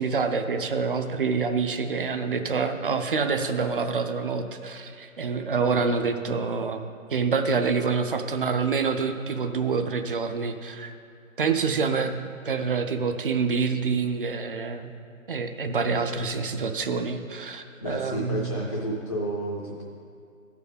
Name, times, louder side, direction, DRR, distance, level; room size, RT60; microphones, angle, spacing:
voice 1, 0.0-6.8 7.1-10.9 11.4-12.2 12.4-14.9 15.3-18.6, right 5 dB, 40° right, 7 dB, 0.5 m, -27 dB
voice 2, 17.8-19.8, right 1 dB, 20° left, -3 dB, 0.5 m, -31 dB
13.0 x 4.8 x 5.0 m, 2.4 s
figure-of-eight pair, 155°, 40 cm